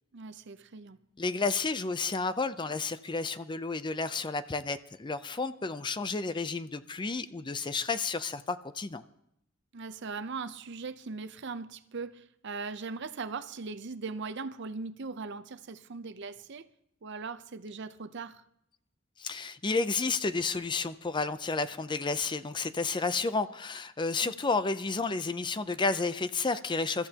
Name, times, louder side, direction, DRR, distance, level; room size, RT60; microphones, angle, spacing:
voice 1, 0.1-1.0 9.7-16.7 17.0-18.4 24.2-24.3, right 4 dB, 60° right, 0.7 m, -39 dB
voice 2, 1.2-9.0 19.2-27.1, left 4 dB, 25° left, 0.5 m, -31 dB
28.0 x 14.0 x 2.9 m
head